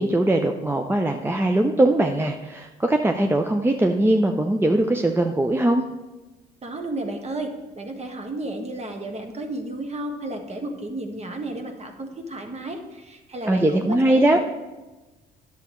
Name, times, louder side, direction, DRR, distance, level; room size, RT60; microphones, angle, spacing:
voice 1, 0.0-5.8 13.4-14.4, right 1 dB, 10° right, 4 dB, 0.6 m, -21 dB
voice 2, 6.6-7.5 7.8-14.4, right 2 dB, 35° right, 4 dB, 1.3 m, -32 dB
10.5 x 6.9 x 3.1 m, 1.1 s
hypercardioid pair, 60°, 20 cm